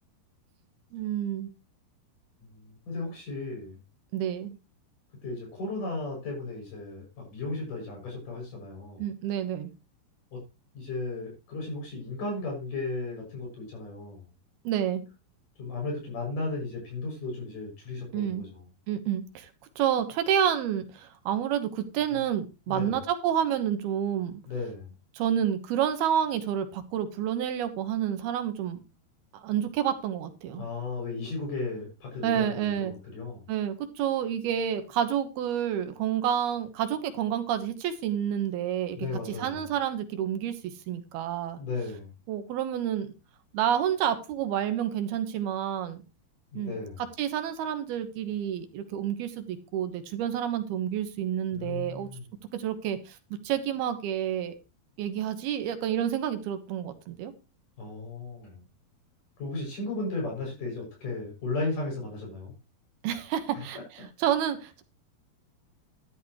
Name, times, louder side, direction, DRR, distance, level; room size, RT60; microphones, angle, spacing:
voice 1, 0.9-1.5 4.1-4.5 9.0-9.7 14.6-15.0 18.1-18.4 18.9-19.5 19.8-24.4 25.2-28.8 29.3-30.7 32.2-32.9 33.5-39.0 39.4-40.6 40.9-41.6 42.3-43.1 43.5-46.0 46.6-46.8 47.2-52.1 52.5-54.5 55.0-57.3 63.0-63.8 64.2-64.8, right 10 dB, 80° right, 9 dB, 3.2 m, -29 dB
voice 2, 2.4-3.8 5.2-9.1 10.3-10.4 10.7-14.3 15.6-18.6 22.7-23.0 24.5-24.9 30.6-33.5 38.9-39.6 41.6-42.1 46.5-47.0 51.5-52.3 57.8-58.6 59.4-62.5 63.5-63.7 64.0-64.1, left 3 dB, 55° left, 0 dB, 8.5 m, -35 dB
13.0 x 12.0 x 3.1 m, 0.27 s
omnidirectional pair, 4.5 m